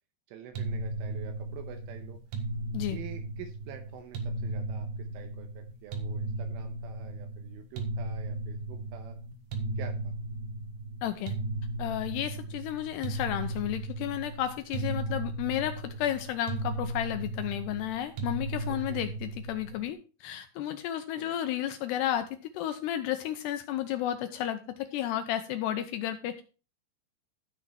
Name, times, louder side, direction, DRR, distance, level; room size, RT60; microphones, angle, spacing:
voice 1, 0.3-2.2 2.8-9.2 9.8-10.1 18.7-19.1 21.1-21.4, right 9 dB, 80° right, 5 dB, 3.4 m, -47 dB
sound 1, 0.5-19.9, right 2 dB, 60° right, 2.7 m, -36 dB
voice 2, 11.0-11.3 11.8-26.4, left 11 dB, 85° left, 8 dB, 2.4 m, -32 dB
13.0 x 6.1 x 4.4 m, 0.34 s
omnidirectional pair, 5.7 m